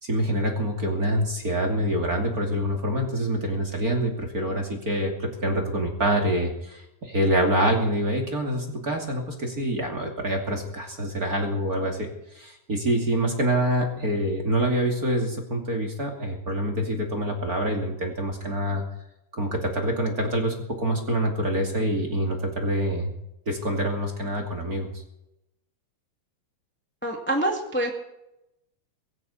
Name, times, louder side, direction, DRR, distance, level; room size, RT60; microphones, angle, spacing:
voice 1, 0.0-12.1 12.3-18.8 19.4-23.1 23.5-24.9, right 1 dB, 30° right, 1 dB, 2.3 m, -26 dB
voice 2, 27.0-27.9, right 1 dB, 5° left, 1 dB, 1.2 m, -26 dB
22.5 x 15.0 x 4.2 m, 0.84 s
omnidirectional pair, 4.5 m